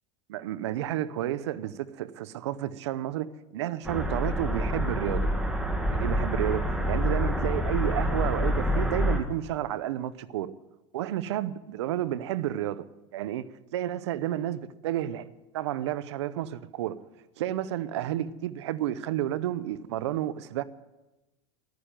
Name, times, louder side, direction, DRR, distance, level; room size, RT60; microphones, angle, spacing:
voice 1, 0.3-5.3 5.9-10.5 10.9-12.8 13.1-15.3 15.5-17.0 17.4-20.6, right 12 dB, 80° right, 0.8 m, -31 dB
sound 1, 3.8-9.2, equal, 5° right, 1.7 m, -27 dB
12.5 x 9.5 x 8.8 m
supercardioid pair, 125°, 14 cm